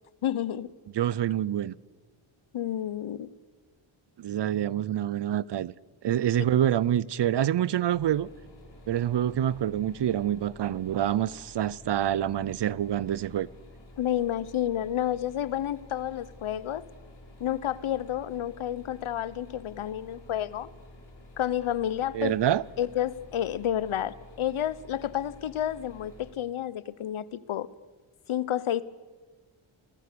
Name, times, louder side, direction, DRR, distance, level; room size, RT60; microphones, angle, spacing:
voice 1, 0.2-0.7 2.5-3.3 14.0-16.8 17.4-20.7 21.4-22.4 22.8-27.7 28.3-28.8, left 11 dB, 75° left, 1.0 m, -30 dB
voice 2, 0.9-1.7 4.2-5.7 6.0-8.3 8.9-13.5 22.1-22.6, right 11 dB, 55° right, 0.6 m, -26 dB
sound 1, 7.9-26.3, left 1 dB, 55° left, 5.5 m, -51 dB
28.5 x 18.5 x 6.9 m
wide cardioid pair, 115°, 49 cm